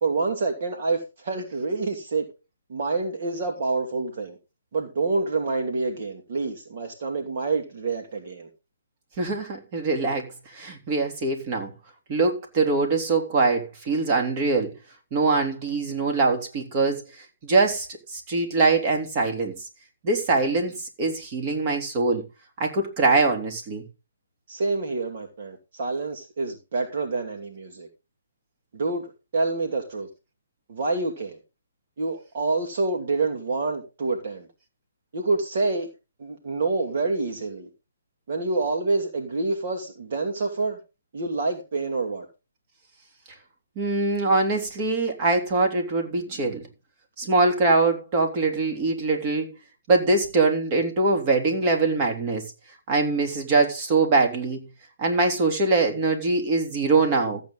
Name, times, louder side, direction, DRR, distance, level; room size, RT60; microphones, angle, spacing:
voice 1, 0.0-2.3 2.7-4.4 4.7-8.5 24.5-27.9 28.7-30.1 30.7-31.4 32.0-34.5 35.1-35.9 36.2-37.7 38.3-40.8 41.1-42.2, right 3 dB, 50° right, 2.5 m, -27 dB
voice 2, 9.2-11.7 12.1-14.7 15.1-19.5 20.0-22.2 22.6-23.8 43.7-46.7 47.2-49.5 49.9-52.4 52.9-54.6 55.0-57.4, right 3 dB, 30° right, 3.4 m, -23 dB
15.0 x 8.3 x 3.9 m
hypercardioid pair, 145°, 0 cm